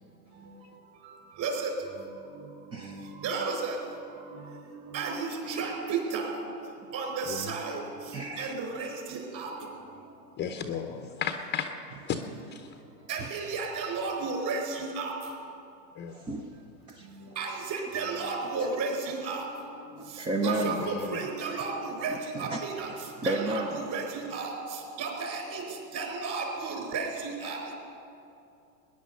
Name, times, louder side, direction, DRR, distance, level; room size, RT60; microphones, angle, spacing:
voice 1, 1.4-1.7 2.8-3.0 3.2-3.7 4.3-4.4 4.7-6.3 6.9-7.8 8.1-9.5 13.1-15.1 17.4-19.4 20.4-21.7 22.0-22.1 22.4-22.9 23.2-24.0 24.3-24.5 25.0-25.6 25.9-27.7, right 4 dB, 40° right, 3 dB, 4.2 m, -33 dB
voice 2, 2.7-3.1 8.1-8.5 13.2-13.3 16.1-16.5 16.9-17.3 18.6-18.8 20.0-20.8 22.1-22.6 23.2-23.8, right 2 dB, 10° right, 4 dB, 0.5 m, -32 dB
voice 3, 10.4-12.2 12.5-12.7 16.0-16.1 20.6-21.2, left 8 dB, 20° left, 7 dB, 0.7 m, -34 dB
20.5 x 10.0 x 6.7 m, 2.7 s
hypercardioid pair, 110°, 50 cm